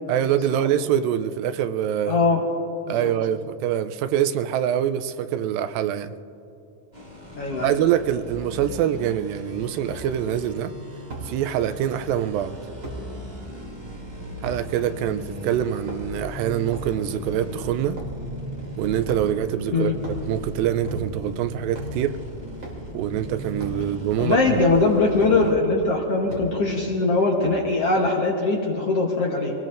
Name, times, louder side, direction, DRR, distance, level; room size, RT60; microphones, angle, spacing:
voice 1, 0.1-2.2 2.9-6.1 7.6-10.7 11.2-12.6 14.4-18.0 18.8-20.0 20.3-22.2 22.9-24.6, right 10 dB, 85° right, 10 dB, 2.3 m, -25 dB
voice 2, 2.1-2.4 2.9-3.1 7.3-7.7 19.7-19.9 24.2-29.5, left 3 dB, 65° left, -1 dB, 1.6 m, -21 dB
sound 1, 6.9-25.5, equal, 70° right, 0.4 m, -37 dB
sound 2, 9.9-10.1 11.1-11.3 12.8-13.0 14.4-14.6 15.7-16.2 16.7-16.9 17.9-18.2 19.0-19.5 19.9-20.3 20.8-21.3 21.7-22.0 22.6-22.8 23.5-23.8 25.2-25.4 26.3-26.5 27.4-27.7, right 2 dB, 35° right, 3.1 m, -37 dB
25.5 x 19.0 x 2.5 m, 2.8 s
omnidirectional pair, 4.0 m